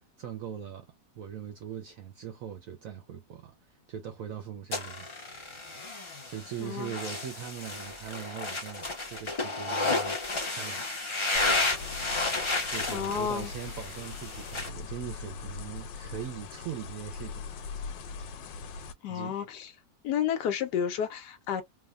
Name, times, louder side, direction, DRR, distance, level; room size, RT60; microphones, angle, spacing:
voice 1, 0.2-0.9 1.1-5.6 6.3-10.2 10.5-10.9 12.7-17.6 19.1-19.4, right 9 dB, 65° right, 0.8 m, -41 dB
sound 1, 4.7-14.7, left 2 dB, 50° left, 0.3 m, -32 dB
voice 2, 6.6-7.0 12.9-13.5 19.0-19.7 20.0-21.6, left 8 dB, 70° left, 1.2 m, -31 dB
sound 2, 11.3-18.9, left 5 dB, 90° left, 1.3 m, -41 dB
3.5 x 2.2 x 2.3 m
omnidirectional pair, 1.9 m